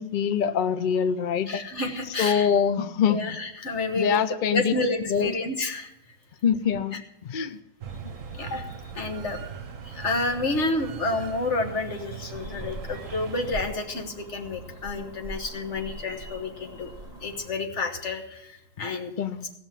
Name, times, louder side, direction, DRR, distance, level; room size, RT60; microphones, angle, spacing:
voice 1, 0.0-1.6 2.2-3.4 3.9-4.7 5.1-5.3 6.4-7.0 7.3-7.6 19.2-19.5, left 7 dB, 65° left, 11 dB, 0.5 m, -24 dB
voice 2, 1.4-2.5 3.1-4.2 4.5-5.9 6.9-7.0 8.3-8.7 8.9-9.4 9.8-19.1, left 2 dB, 50° left, 5 dB, 1.6 m, -30 dB
sound 1, 7.8-13.7, right 7 dB, 60° right, 1.1 m, -39 dB
sound 2, 12.3-17.5, right 1 dB, 25° left, 1.4 m, -42 dB
17.0 x 6.0 x 7.4 m, 0.88 s
omnidirectional pair, 1.6 m